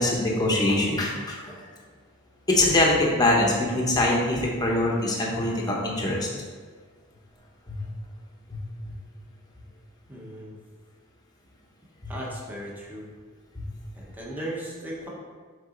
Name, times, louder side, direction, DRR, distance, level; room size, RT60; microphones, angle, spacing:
voice 1, 0.0-1.5 2.5-6.3 7.7-7.8 8.5-8.6, left 1 dB, 20° left, -3 dB, 1.1 m, -23 dB
voice 2, 10.1-10.6 12.1-13.0 13.9-15.1, right 1 dB, 10° right, -4 dB, 1.3 m, -36 dB
7.1 x 4.1 x 3.9 m, 1.5 s
head